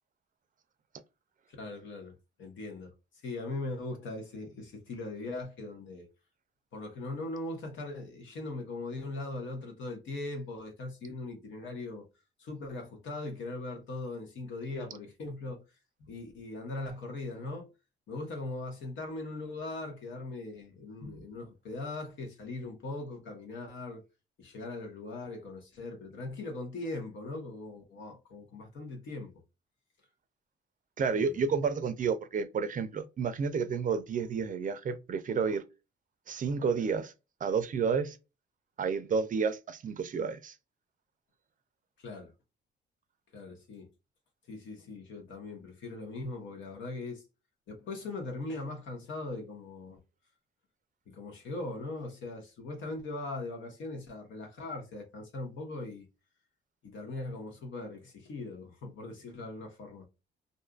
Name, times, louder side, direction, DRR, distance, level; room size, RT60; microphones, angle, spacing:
voice 1, 1.6-2.9 3.2-6.1 6.7-12.1 12.4-15.6 16.0-17.7 18.1-24.0 24.4-29.3 31.1-31.5 42.0-42.3 43.3-43.9 44.5-47.2 47.7-50.0 51.1-56.1 56.8-60.1, left 2 dB, 70° left, 1.1 m, -40 dB
voice 2, 31.0-35.6 36.3-37.1 37.4-38.2 38.8-40.5, right 5 dB, 40° right, 0.5 m, -30 dB
2.6 x 2.4 x 2.3 m
cardioid pair, 90°, 20 cm